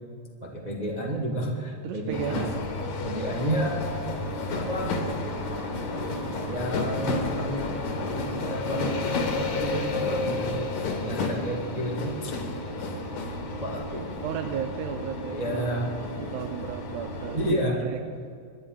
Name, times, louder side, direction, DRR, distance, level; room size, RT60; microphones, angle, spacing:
voice 1, 0.4-2.4 3.0-3.9 4.5-5.0 6.5-7.8 8.1-10.7 11.0-12.3 13.4-14.1 15.3-15.9 17.3-17.8, equal, 40° right, -2 dB, 0.5 m, -31 dB
voice 2, 1.8-2.5 14.2-15.8 16.2-18.0, right 9 dB, 75° right, 7 dB, 2.0 m, -34 dB
sound 1, 2.1-17.5, left 2 dB, 60° left, 2.9 m, -31 dB
26.5 x 11.0 x 3.9 m, 2.4 s
omnidirectional pair, 3.8 m